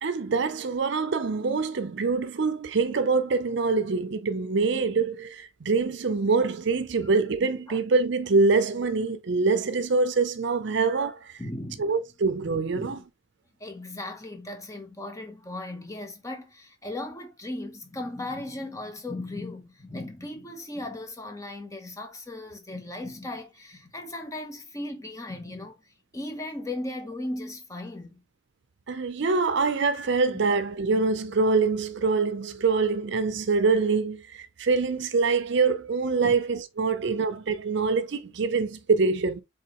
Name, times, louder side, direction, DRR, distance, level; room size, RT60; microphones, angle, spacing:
voice 1, 0.0-11.3 11.8-13.0 28.9-39.4, right 4 dB, 55° right, 0.5 m, -25 dB
voice 2, 11.4-11.9 12.7-13.0 13.6-28.1 30.3-30.5 36.2-36.3, left 2 dB, 15° left, 0.9 m, -37 dB
4.8 x 3.7 x 3.0 m
head